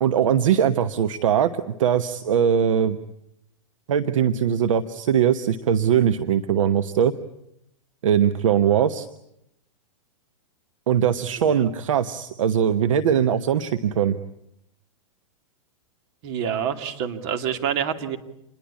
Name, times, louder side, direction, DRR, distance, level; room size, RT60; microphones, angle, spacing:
voice 1, 0.0-3.0 3.9-7.1 8.0-9.1 10.9-14.1, right 8 dB, 70° right, 11 dB, 1.1 m, -21 dB
voice 2, 11.4-11.7 16.2-18.2, right 8 dB, 50° right, 6 dB, 2.6 m, -27 dB
27.5 x 21.5 x 8.5 m, 0.80 s
hypercardioid pair, 110°, 17 cm